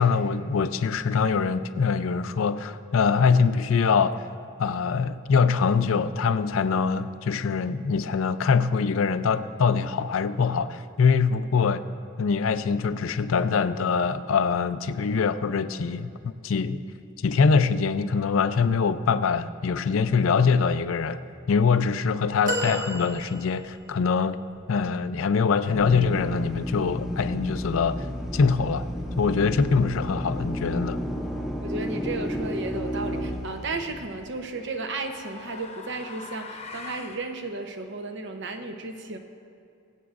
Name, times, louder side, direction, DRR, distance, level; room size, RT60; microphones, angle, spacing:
voice 1, 0.0-4.2 4.6-11.8 12.2-16.8 17.2-21.2 21.5-24.4 24.7-28.1 28.3-28.9 29.2-31.0, left 5 dB, 80° left, 12 dB, 0.4 m, -23 dB
sound 1, 22.5-23.9 24.6-24.7, equal, 40° right, 1.2 m, -31 dB
Drill, 25.7-34.3, equal, ahead, 0.7 m, -32 dB
voice 2, 31.6-39.2, right 3 dB, 60° right, 6 dB, 0.8 m, -34 dB
sound 2, 33.1-33.5 34.5-37.2, left 4 dB, 30° left, 0.8 m, -42 dB
23.5 x 8.2 x 2.5 m, 2.4 s
head